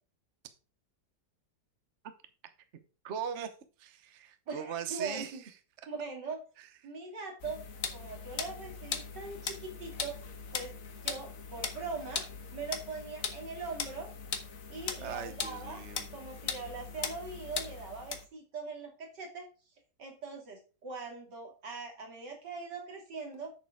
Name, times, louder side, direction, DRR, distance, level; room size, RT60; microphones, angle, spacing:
voice 1, 3.0-3.5 3.8-5.4 6.6-6.7 15.0-16.1, right 8 dB, 45° right, 1.2 m, -39 dB
voice 2, 4.5-5.4 5.9-6.4 6.8-7.6 7.9-10.2 10.5-10.7 11.0-12.2 12.5-14.1 14.7-15.8 16.1-19.5 20.0-23.5, right 4 dB, 85° right, 3.1 m, -41 dB
sound 1, 7.4-18.3, left 6 dB, 55° left, 1.5 m, -40 dB
8.5 x 6.7 x 4.8 m
omnidirectional pair, 1.8 m